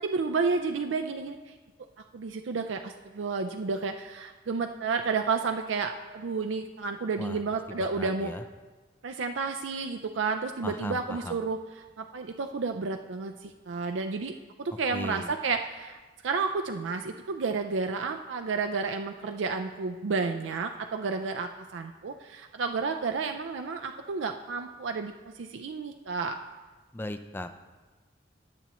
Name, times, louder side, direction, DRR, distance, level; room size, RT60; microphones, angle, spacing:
voice 1, 0.0-1.5 2.1-8.3 9.0-26.3, right 4 dB, 90° right, 5 dB, 0.5 m, -31 dB
voice 2, 7.9-8.4 10.6-11.3 14.9-15.3 26.9-27.5, left 1 dB, 10° left, 9 dB, 0.4 m, -37 dB
17.5 x 6.9 x 3.0 m, 1.3 s
head